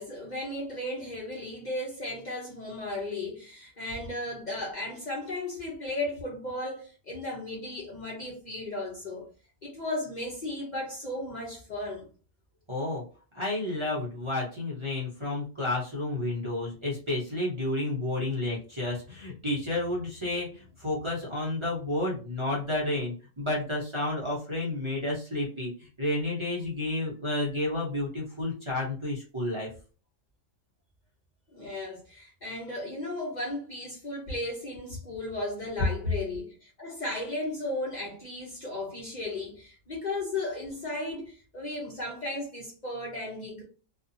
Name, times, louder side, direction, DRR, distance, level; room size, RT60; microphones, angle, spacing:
voice 1, 0.0-9.2 9.6-12.1 31.5-43.6, left 2 dB, 40° left, 0.8 m, -35 dB
voice 2, 12.7-13.0 13.3-29.7, left 2 dB, 25° right, 0.8 m, -31 dB
2.7 x 2.4 x 2.5 m
omnidirectional pair, 1.3 m